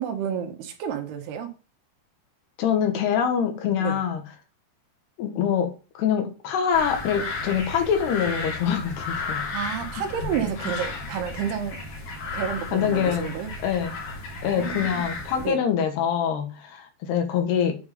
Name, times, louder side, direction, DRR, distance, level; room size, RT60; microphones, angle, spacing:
voice 1, 0.0-1.5 3.8-4.0 9.5-11.8 12.3-13.5 14.5-15.1 15.4-15.6, right 8 dB, 85° right, 3.4 m, -30 dB
voice 2, 2.6-4.2 5.2-5.7 6.0-9.4 10.2-10.3 12.7-13.3 13.6-13.9 14.4-17.8, left 8 dB, 85° left, 3.7 m, -24 dB
sound 1, 6.7-15.5, left 3 dB, 65° left, 4.4 m, -34 dB
9.5 x 5.2 x 5.2 m
omnidirectional pair, 4.6 m